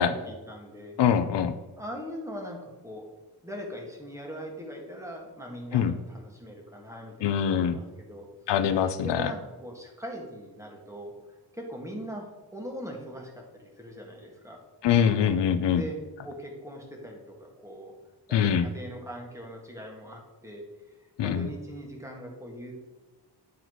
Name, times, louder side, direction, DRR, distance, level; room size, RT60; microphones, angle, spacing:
voice 1, 0.0-1.0 1.8-3.0 3.4-8.3 8.8-14.6 15.7-16.0 16.2-17.9 18.3-20.6 21.2-22.7, equal, 5° right, 0 dB, 1.5 m, -41 dB
voice 2, 1.0-1.6 5.7-5.9 7.2-7.8 8.5-9.3 14.8-15.8 18.3-18.7 21.2-21.5, left 8 dB, 75° left, 11 dB, 0.6 m, -23 dB
9.7 x 3.9 x 4.6 m, 1.2 s
wide cardioid pair, 140°, 42 cm